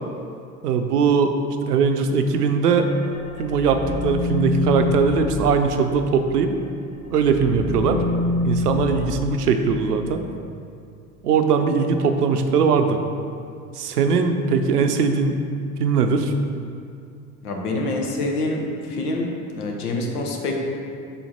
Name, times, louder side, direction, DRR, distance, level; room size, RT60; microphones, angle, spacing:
voice 1, 0.6-1.3 1.7-2.9 3.4-6.5 7.1-8.0 8.4-10.2 11.2-13.0 13.8-15.4 15.8-16.3, right 5 dB, 85° right, 7 dB, 0.6 m, -20 dB
sound 1, 2.7-6.6 6.9-10.3, left 2 dB, 15° left, 0.9 m, -27 dB
voice 2, 17.4-20.5, left 2 dB, 75° left, 1 dB, 1.0 m, -26 dB
5.6 x 4.2 x 4.2 m, 2.3 s
figure-of-eight pair, 70°, 46 cm